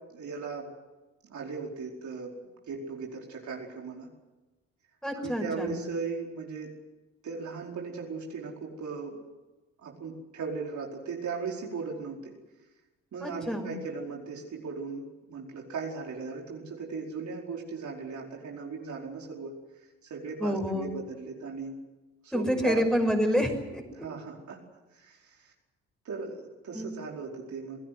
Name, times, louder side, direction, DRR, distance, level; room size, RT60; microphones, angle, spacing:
voice 1, 0.1-0.7 1.2-2.4 2.7-4.1 5.2-6.7 7.2-9.2 9.8-12.3 13.1-19.5 20.0-21.8 22.2-22.8 23.9-24.6 24.9-25.5 26.0-27.8, right 4 dB, 55° right, -1 dB, 4.9 m, -37 dB
voice 2, 5.0-5.8 13.2-13.7 20.4-20.9 22.3-24.0 26.7-26.9, equal, ahead, 3 dB, 6.0 m, -28 dB
27.5 x 17.5 x 7.9 m, 1.1 s
hypercardioid pair, 50°, 35 cm